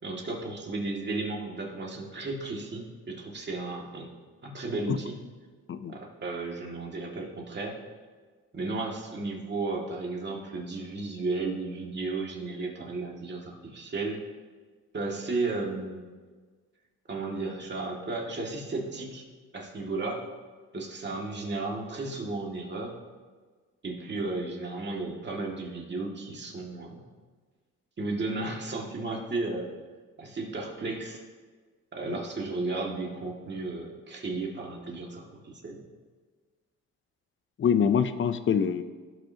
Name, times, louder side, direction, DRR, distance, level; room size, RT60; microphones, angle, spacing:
voice 1, 0.0-4.1 4.4-5.2 5.9-7.8 8.5-14.2 14.9-16.0 17.1-19.2 19.5-20.2 20.7-23.0 23.8-27.0 28.0-29.7 30.2-31.2 31.9-35.8, right 3 dB, 35° right, -1 dB, 2.2 m, -34 dB
voice 2, 37.6-38.8, left 7 dB, 40° left, 11 dB, 0.6 m, -25 dB
17.0 x 6.0 x 2.9 m, 1.5 s
cardioid pair, 90°, 30 cm